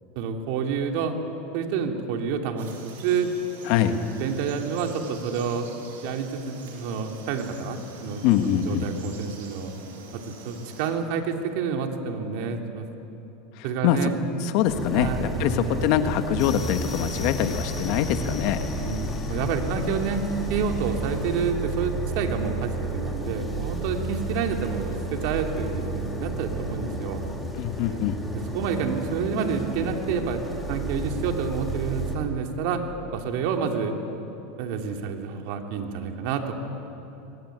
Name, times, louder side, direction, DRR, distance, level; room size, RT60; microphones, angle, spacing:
voice 1, 0.1-1.1 1.5-3.3 3.9-5.7 6.0-8.2 8.6-9.7 10.1-12.9 13.6-14.1 14.9-15.9 18.7-20.2 20.5-27.3 27.9-28.0 28.5-30.4 30.7-32.8 33.1-33.9 34.6-36.5, right 6 dB, 60° right, 4 dB, 2.9 m, -29 dB
Frog, 2.6-10.9, right 4 dB, 85° right, 5.4 m, -46 dB
voice 2, 3.6-4.0 8.2-8.9 13.6-14.1 14.4-18.6 27.6-28.2, left 9 dB, 60° left, 8 dB, 1.8 m, -24 dB
sound 1, 14.7-32.2, right 2 dB, 5° left, 3.8 m, -32 dB
sound 2, 16.4-23.9, left 2 dB, 30° left, 3.1 m, -35 dB
23.5 x 20.0 x 9.3 m, 3.0 s
supercardioid pair, 125°, 0 cm